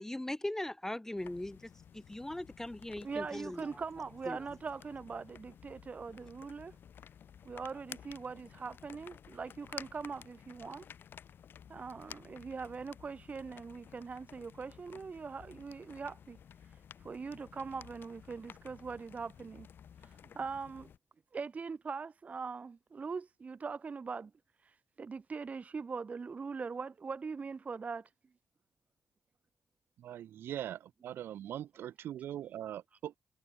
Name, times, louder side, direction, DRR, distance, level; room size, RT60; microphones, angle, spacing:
voice 1, 0.0-3.8 4.3-4.5, left 1 dB, 10° left, 0.5 m, -40 dB
sound 1, 1.2-21.0, left 8 dB, 70° left, 2.4 m, -54 dB
voice 2, 3.0-6.8 7.4-10.8 11.7-16.4 16.7-19.7 20.0-20.9 21.3-24.3 24.6-28.1 32.9-33.0, right 5 dB, 40° right, 0.5 m, -42 dB
voice 3, 30.0-33.1, right 11 dB, 80° right, 1.1 m, -41 dB
supercardioid pair, 55°, 4 cm